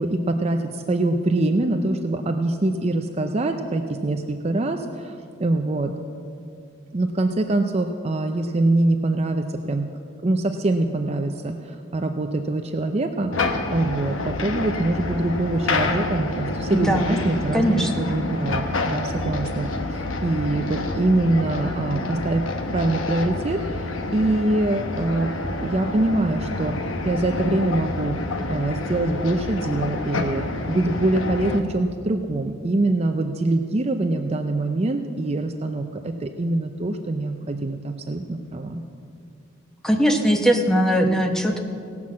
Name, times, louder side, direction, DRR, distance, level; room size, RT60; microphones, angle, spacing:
voice 1, 0.0-5.9 6.9-9.9 10.2-13.3 13.7-22.4 22.7-25.3 25.6-26.7 27.0-28.2 28.5-38.8, right 2 dB, 30° right, 5 dB, 0.5 m, -24 dB
sound 1, 13.3-31.6, left 2 dB, 80° left, 1.0 m, -28 dB
voice 2, 16.7-17.1 17.5-18.0 39.8-41.6, equal, 5° left, 3 dB, 1.0 m, -20 dB
17.5 x 6.0 x 7.3 m, 2.5 s
head